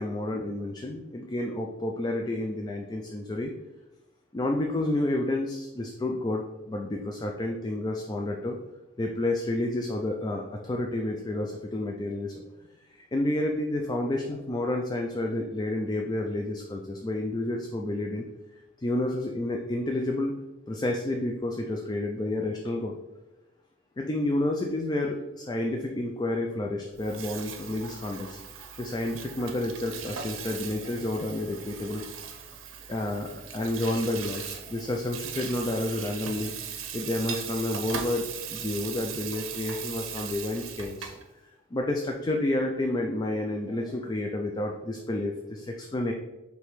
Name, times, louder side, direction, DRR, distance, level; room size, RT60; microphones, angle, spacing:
voice 1, 0.0-3.5 4.3-8.6 9.0-12.4 12.9-18.2 18.8-20.3 20.7-23.0 24.0-28.4 28.8-32.0 32.9-41.1 41.7-46.1, left 1 dB, 20° left, 1 dB, 0.3 m, -30 dB
Water tap faucet / Sink (filling or washing), 26.9-41.2, right 7 dB, 85° right, 0.6 m, -39 dB
5.0 x 3.2 x 3.1 m, 1.0 s
head